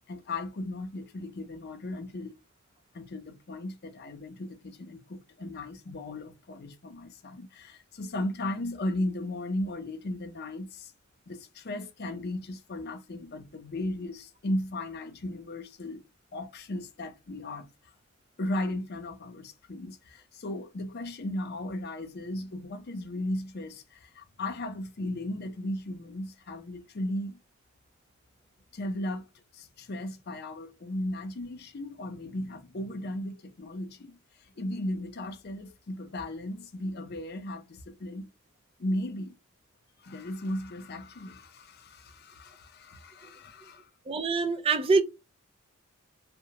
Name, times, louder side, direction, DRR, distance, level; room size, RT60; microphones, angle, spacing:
voice 1, 0.1-2.4 2.9-10.9 11.3-16.0 16.3-17.9 18.4-27.4 28.7-38.3 38.8-39.4 40.0-43.9, left 1 dB, 45° left, 0.5 m, -36 dB
voice 2, 44.1-45.0, right 4 dB, 25° right, 0.4 m, -24 dB
2.7 x 2.2 x 2.8 m
head